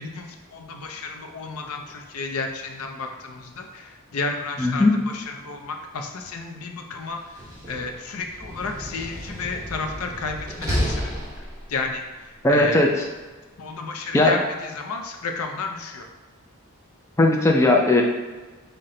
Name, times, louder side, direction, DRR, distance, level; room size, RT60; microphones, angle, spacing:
voice 1, 0.0-7.2 7.7-11.3 11.7-12.0 12.5-12.8 13.6-16.0, left 3 dB, 80° left, 4 dB, 0.5 m, -32 dB
voice 2, 4.6-5.0 12.4-13.1 14.1-14.3 17.2-18.0, left 2 dB, 15° left, -1 dB, 0.3 m, -18 dB
Slam, 7.2-11.9, equal, 15° right, 0.9 m, -31 dB
5.6 x 2.2 x 3.7 m, 1.3 s
head